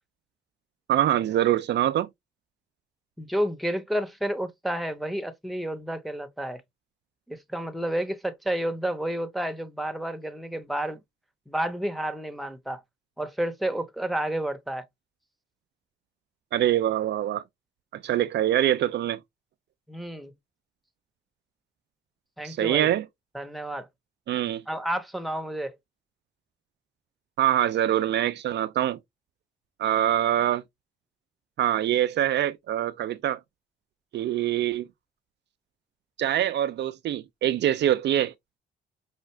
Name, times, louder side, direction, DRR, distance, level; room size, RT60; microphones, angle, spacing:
voice 1, 0.9-2.1 16.5-17.4 17.9-19.2 22.4-23.1 24.3-24.6 27.4-29.0 29.8-30.6 31.6-33.4 34.1-34.9 36.2-38.3, right 12 dB, 60° right, 0.4 m, -24 dB
voice 2, 3.2-6.6 7.3-11.0 11.5-12.8 13.2-14.9 19.9-20.3 22.4-22.9 23.3-23.9 24.7-25.8, right 1 dB, ahead, 0.8 m, -30 dB
5.6 x 2.4 x 3.2 m
cardioid pair, 90°, 20 cm